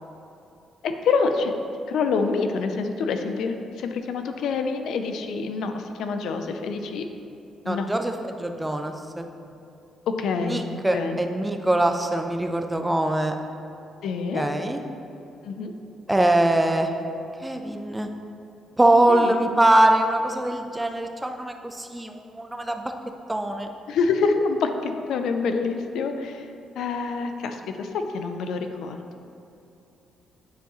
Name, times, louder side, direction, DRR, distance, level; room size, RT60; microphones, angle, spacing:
voice 1, 0.8-1.5 1.9-7.0 7.6-7.9 10.1-10.6 10.9-11.2 14.0-14.4 15.4-15.7 19.1-19.3 23.9-26.5 26.8-29.0, left 4 dB, 75° left, 6 dB, 0.4 m, -26 dB
voice 2, 7.7-8.1 8.4-9.2 10.4-13.3 14.3-14.8 16.1-16.9 17.4-18.1 18.8-22.9 23.3-23.7, right 1 dB, 10° right, 5 dB, 0.5 m, -22 dB
9.2 x 4.6 x 3.0 m, 2.8 s
cardioid pair, 90°, 0 cm